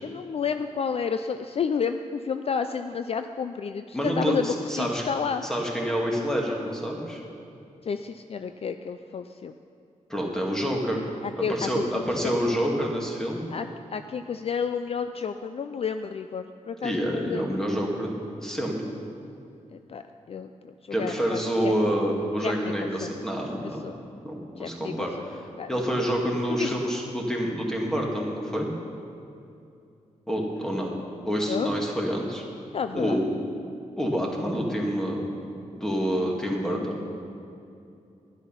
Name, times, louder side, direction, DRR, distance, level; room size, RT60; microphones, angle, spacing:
voice 1, 0.0-5.4 7.9-9.5 11.2-12.3 13.5-17.5 19.7-20.0 20.3-20.7 21.0-21.7 22.4-23.1 23.8-24.0 24.6-25.1 25.6-25.7 26.5-26.7 31.5-31.7 32.7-33.2, left 6 dB, 50° left, 8 dB, 0.4 m, -31 dB
voice 2, 3.9-5.1 5.4-7.2 10.1-11.0 11.4-13.4 16.8-18.1 18.4-18.8 20.9-23.8 24.2-25.4 25.7-28.7 30.3-30.9 31.3-32.4 32.9-33.2 34.0-35.3 35.7-37.0, equal, 5° left, -1 dB, 2.0 m, -27 dB
12.0 x 10.5 x 5.6 m, 2.6 s
wide cardioid pair, 125°, 13 cm